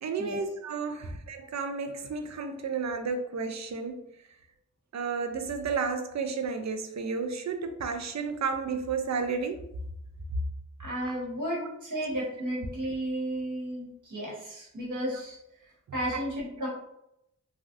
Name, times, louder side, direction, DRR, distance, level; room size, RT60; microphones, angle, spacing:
voice 1, 0.0-4.0 4.9-9.6, right 5 dB, 65° right, 7 dB, 0.5 m, -32 dB
voice 2, 10.8-15.4 15.9-16.7, right 1 dB, 85° right, -4 dB, 1.3 m, -33 dB
3.2 x 2.4 x 2.5 m, 0.80 s
wide cardioid pair, 70°, 30 cm